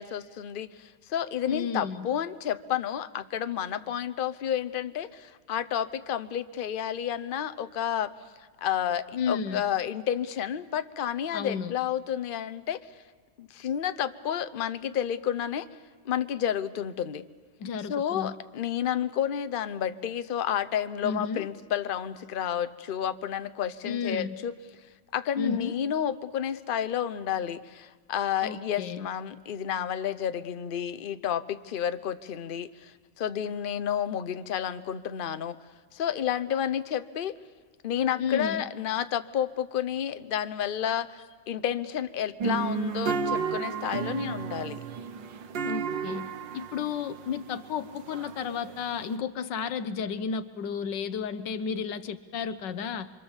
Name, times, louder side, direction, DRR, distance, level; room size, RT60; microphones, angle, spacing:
voice 1, 0.0-8.1 8.6-12.9 13.4-15.7 16.0-17.2 17.9-24.5 25.1-35.6 35.9-37.4 37.8-44.8, left 9 dB, 50° left, 12 dB, 0.6 m, -30 dB
voice 2, 1.5-2.1 9.1-9.6 11.3-11.7 17.6-18.3 21.0-21.5 23.8-24.4 25.4-25.7 28.4-29.1 38.2-38.6 45.6-46.3 46.5-53.1, left 6 dB, 75° left, 13 dB, 1.6 m, -32 dB
sound 1, 42.4-49.1, right 6 dB, 85° right, 1.8 m, -33 dB
26.0 x 24.5 x 7.2 m, 1.5 s
omnidirectional pair, 1.9 m